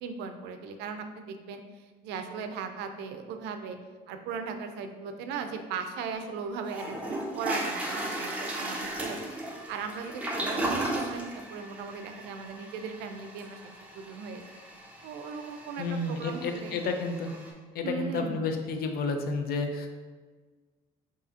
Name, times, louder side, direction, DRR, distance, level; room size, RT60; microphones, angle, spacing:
voice 1, 0.0-3.8 4.1-9.2 9.7-13.6 14.0-14.4 15.0-16.8 17.8-18.5, right 5 dB, 85° right, 7 dB, 0.4 m, -38 dB
Toilet flush, 6.2-6.3 6.7-17.5, right 1 dB, 10° right, 0.8 m, -36 dB
voice 2, 15.8-17.3 17.7-19.9, left 3 dB, 65° left, 5 dB, 0.5 m, -31 dB
4.8 x 2.8 x 2.7 m, 1.4 s
cardioid pair, 110°, 17 cm